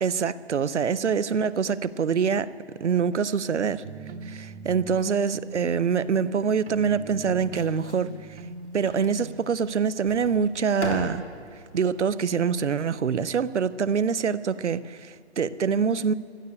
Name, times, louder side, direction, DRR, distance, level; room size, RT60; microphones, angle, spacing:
voice 1, 0.0-2.5 2.8-3.8 4.2-8.4 8.7-11.2 11.7-16.1, right 6 dB, 85° right, 0.7 m, -25 dB
sound 1, 3.8-9.4, right 4 dB, 60° right, 1.0 m, -41 dB
sound 2, 5.9-12.3, left 1 dB, 90° left, 3.2 m, -41 dB
14.0 x 9.8 x 8.4 m
figure-of-eight pair, 150°, 34 cm